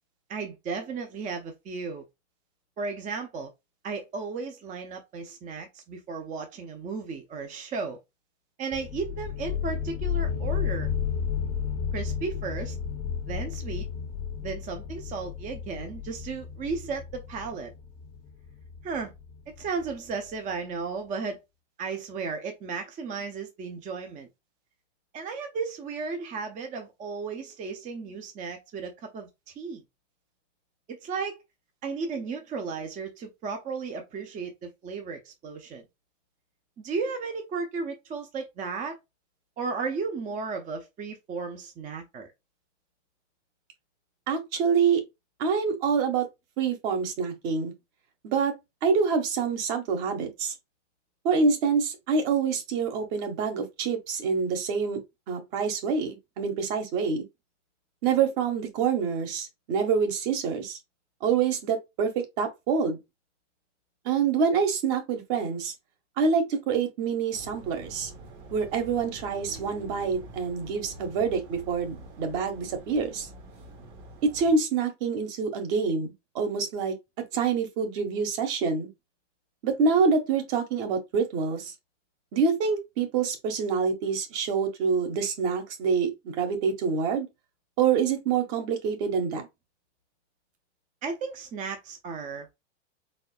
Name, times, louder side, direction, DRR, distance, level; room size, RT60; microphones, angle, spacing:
voice 1, 0.3-2.0 2.8-3.5 3.8-8.0 8.6-10.9 11.9-12.8 13.3-13.9 14.4-17.7 18.8-19.1 19.5-21.4 21.8-24.3 25.1-29.8 30.9-31.4 31.8-35.8 36.8-39.0 39.6-42.3 91.0-92.5, right 4 dB, 20° right, 0.6 m, -34 dB
sound 1, 8.7-20.1, left 8 dB, 30° left, 0.5 m, -33 dB
voice 2, 44.3-45.0 45.4-46.3 46.6-47.7 48.2-48.5 48.8-50.5 51.2-55.0 55.3-57.2 58.0-60.8 61.2-63.0 64.0-65.7 66.2-68.1 68.5-73.3 74.3-76.9 77.3-78.9 79.6-81.7 82.3-87.3 87.8-89.5, right 5 dB, 50° right, 1.4 m, -26 dB
sound 2, 67.3-74.5, right 2 dB, 75° right, 1.4 m, -46 dB
4.1 x 3.8 x 2.2 m
supercardioid pair, 130°, 36 cm